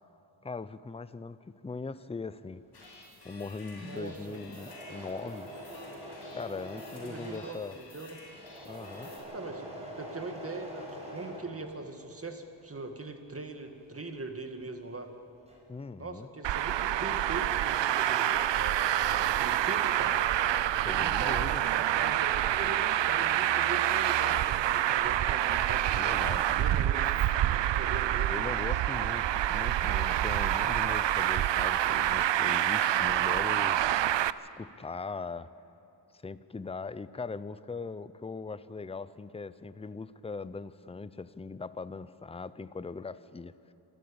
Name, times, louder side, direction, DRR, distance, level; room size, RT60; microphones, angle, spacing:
voice 1, 0.4-2.6 3.2-5.5 6.3-7.8 8.6-9.1 15.7-16.3 20.7-21.6 25.9-26.7 28.3-33.8 34.4-35.5 36.2-43.5, left 4 dB, 15° left, 15 dB, 0.5 m, -40 dB
Engine / Mechanisms, 2.5-12.2 12.5-14.9 15.1-15.8, equal, 15° right, 5.6 m, -46 dB
sound 1, 2.7-9.2, left 2 dB, 60° left, 6.5 m, -52 dB
voice 2, 3.8-4.4 7.0-8.2 9.3-9.6 10.0-15.1 16.0-20.2 20.8-26.0 26.6-27.0 27.7-28.5, right 3 dB, 30° right, 5 dB, 1.9 m, -41 dB
Traffic noise roadway noise, 16.4-34.3, right 12 dB, 70° right, 0.6 m, -27 dB
27.0 x 12.5 x 8.7 m, 3.0 s
wide cardioid pair, 100°, 45 cm